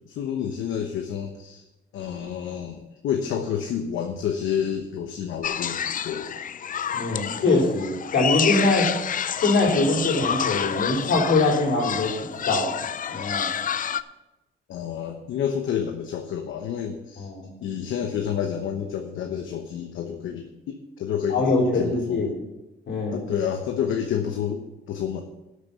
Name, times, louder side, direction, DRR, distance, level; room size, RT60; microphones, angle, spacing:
voice 1, 0.1-1.6 1.9-6.4 14.7-17.3 17.6-21.4 21.7-22.3 23.1-25.2, left 8 dB, 80° left, 5 dB, 1.0 m, -29 dB
sound 1, 5.4-14.0, left 8 dB, 45° left, 0.5 m, -29 dB
voice 2, 6.9-8.9 9.4-12.1 12.4-12.7 13.1-13.5 17.2-17.5 21.3-22.3 22.9-23.2, left 2 dB, 65° left, -2 dB, 3.7 m, -22 dB
12.0 x 6.6 x 5.8 m, 0.98 s
cardioid pair, 90°, 20 cm